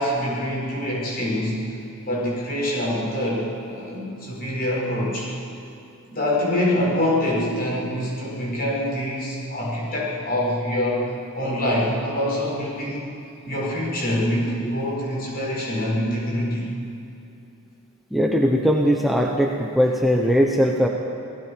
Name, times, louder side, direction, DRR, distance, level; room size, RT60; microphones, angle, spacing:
voice 1, 0.0-1.6 2.0-5.3 6.1-13.1 13.4-16.7, left 1 dB, 45° left, -5 dB, 7.2 m, -25 dB
voice 2, 18.1-20.9, equal, ahead, 0 dB, 1.1 m, -19 dB
28.5 x 19.0 x 5.2 m, 2.7 s
head